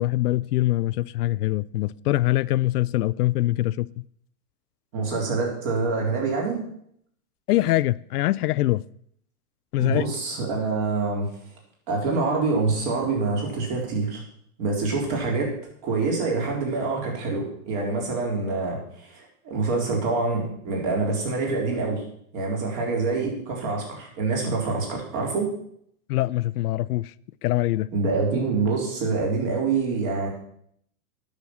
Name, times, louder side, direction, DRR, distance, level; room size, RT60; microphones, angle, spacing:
voice 1, 0.0-3.9 7.5-8.8 9.7-10.0 26.1-27.1 27.4-27.9, left 16 dB, 75° left, 0.5 m, -23 dB
voice 2, 4.9-6.6 9.8-11.3 11.9-14.2 14.6-15.5 15.8-22.0 22.3-25.5 27.9-30.3, right 3 dB, 40° right, 4.0 m, -26 dB
9.6 x 6.5 x 7.2 m
hypercardioid pair, 150°, 46 cm